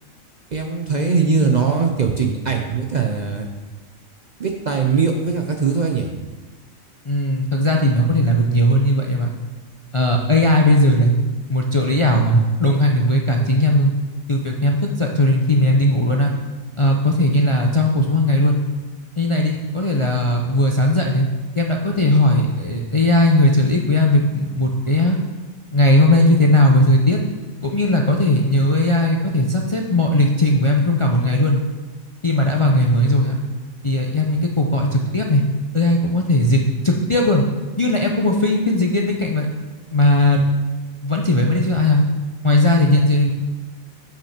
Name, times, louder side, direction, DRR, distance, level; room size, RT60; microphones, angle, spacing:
voice 1, 0.5-3.5 4.4-6.2 10.6-10.7, right 5 dB, 65° right, 3 dB, 0.4 m, -20 dB
voice 2, 7.0-9.3 9.9-11.2 11.5-13.9 14.3-16.3 16.8-18.6 19.2-21.3 21.6-25.2 25.7-27.2 27.6-31.6 32.2-33.4 33.8-35.4 35.7-37.4 37.8-39.5 39.9-40.4 41.0-42.0 42.4-43.3, left 1 dB, 50° left, 1 dB, 0.3 m, -17 dB
6.0 x 5.7 x 6.5 m, 1.3 s
omnidirectional pair, 1.5 m